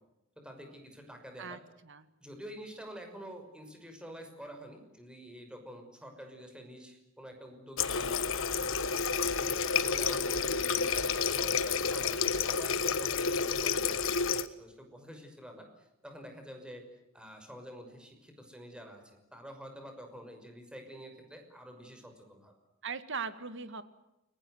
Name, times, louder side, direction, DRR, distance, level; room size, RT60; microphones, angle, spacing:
voice 1, 0.4-1.6 2.2-9.1 9.7-16.9 17.1-22.5, equal, 5° right, 5 dB, 6.0 m, -48 dB
voice 2, 1.4-2.1 10.6-11.0 22.8-23.8, right 5 dB, 60° right, 11 dB, 2.0 m, -40 dB
Water tap faucet, 7.8-14.5, left 5 dB, 70° left, 1.3 m, -30 dB
30.0 x 20.0 x 8.0 m, 0.91 s
head